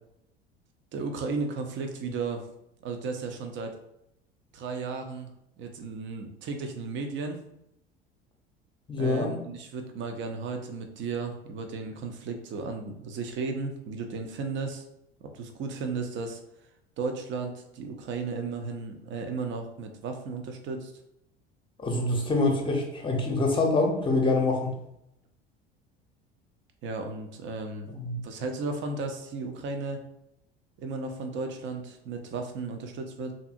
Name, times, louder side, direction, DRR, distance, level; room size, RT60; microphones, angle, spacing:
voice 1, 0.9-2.4 2.8-3.7 4.5-5.3 5.6-7.4 9.0-14.8 15.3-16.4 17.0-20.9 26.8-27.9 28.2-30.0 30.8-33.3, right 4 dB, 40° right, 5 dB, 0.5 m, -34 dB
voice 2, 8.9-9.3 21.8-24.8 27.9-28.2, left 2 dB, 15° left, 1 dB, 0.7 m, -25 dB
2.6 x 2.6 x 2.5 m, 0.81 s
figure-of-eight pair, 70°, 30 cm